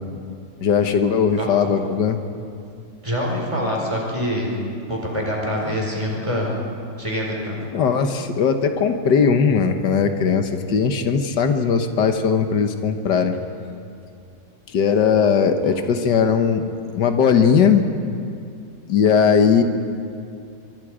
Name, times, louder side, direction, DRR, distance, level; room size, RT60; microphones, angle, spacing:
voice 1, 0.6-2.2 5.7-5.8 7.7-13.4 14.7-16.7 16.9-17.8 18.9-19.6, left 6 dB, 85° left, 7 dB, 1.8 m, -18 dB
voice 2, 3.0-4.5 4.9-6.5 7.0-7.6 15.6-15.7, equal, 15° right, -2 dB, 4.8 m, -25 dB
26.0 x 23.5 x 5.0 m, 2.4 s
omnidirectional pair, 1.8 m